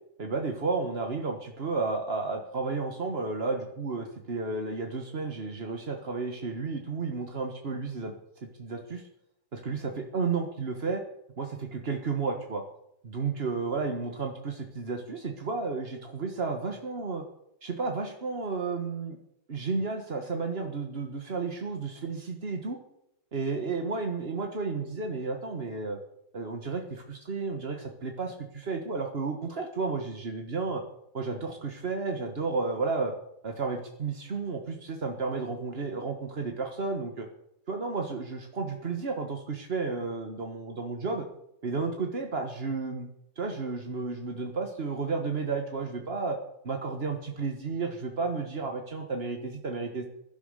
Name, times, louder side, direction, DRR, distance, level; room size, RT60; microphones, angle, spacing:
voice 1, 0.2-8.1 8.4-9.0 9.5-11.0 11.4-11.5 11.7-12.6 13.0-17.2 17.6-19.2 19.5-22.8 23.3-26.0 26.3-30.8 31.1-33.1 33.4-37.3 37.7-41.2 41.6-43.1 43.4-46.4 46.6-50.1, right 4 dB, 45° right, 4 dB, 0.7 m, -32 dB
15.5 x 11.5 x 6.6 m, 0.79 s
omnidirectional pair, 3.5 m